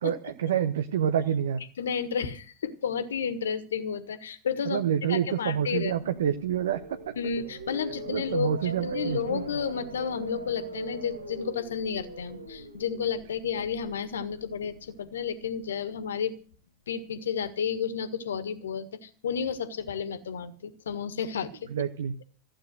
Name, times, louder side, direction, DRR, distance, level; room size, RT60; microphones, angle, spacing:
voice 1, 0.0-1.6 4.7-7.1 8.1-9.4 21.7-22.1, right 9 dB, 60° right, 9 dB, 0.8 m, -28 dB
voice 2, 1.8-4.8 5.1-5.9 7.2-16.4 16.9-21.7, left 7 dB, 65° left, 13 dB, 1.6 m, -32 dB
sound 1, 5.6-15.8, right 2 dB, 80° right, 4.2 m, -41 dB
15.5 x 9.0 x 7.7 m, 0.41 s
figure-of-eight pair, 90°, 0 cm